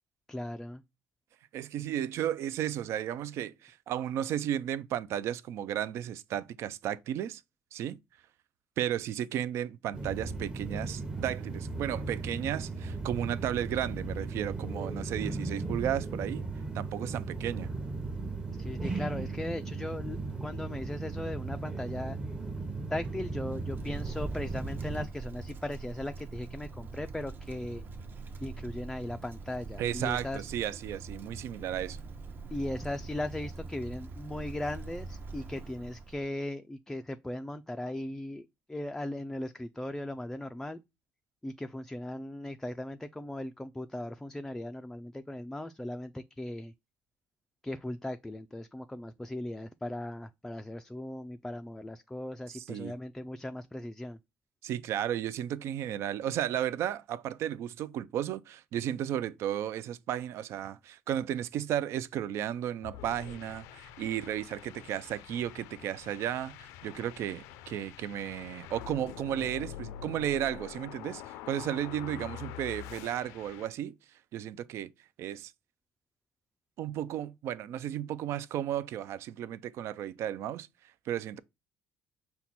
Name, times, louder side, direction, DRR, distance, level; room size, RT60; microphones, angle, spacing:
voice 1, 0.3-0.8 18.6-22.2 22.9-27.8 28.4-30.4 32.5-40.8 41.4-46.7 47.6-54.2, left 1 dB, 10° left, 0.3 m, -38 dB
voice 2, 1.5-7.4 7.7-8.0 8.8-16.4 16.7-17.7 29.8-32.0 52.5-52.9 54.6-73.9 74.3-74.9 75.2-75.5 76.8-80.7 81.1-81.4, right 11 dB, 65° right, 0.4 m, -34 dB
sound 1, 9.9-25.1, right 3 dB, 20° right, 0.8 m, -36 dB
Wind, 23.5-36.3, right 3 dB, 45° right, 0.9 m, -43 dB
sound 2, 62.8-73.7, left 9 dB, 90° left, 0.4 m, -46 dB
5.7 x 2.2 x 4.1 m
cardioid pair, 95°, 5 cm